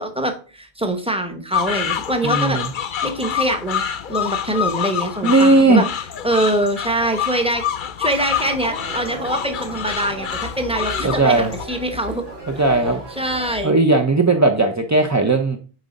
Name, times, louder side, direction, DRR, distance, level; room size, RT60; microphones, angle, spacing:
voice 1, 0.0-2.6 3.0-3.8 4.1-5.9 6.2-7.6 8.0-12.2 13.1-13.8, right 1 dB, 5° right, 6 dB, 1.0 m, -23 dB
sound 1, 1.5-11.7, left 9 dB, 55° left, 0.8 m, -27 dB
voice 2, 2.2-2.7 5.2-5.8 11.0-11.5 12.5-13.0 13.6-15.6, right 2 dB, 25° right, 3 dB, 0.5 m, -16 dB
sound 2, 8.3-13.7, equal, 80° right, 3.0 m, -35 dB
9.2 x 3.8 x 5.2 m, 0.38 s
omnidirectional pair, 1.0 m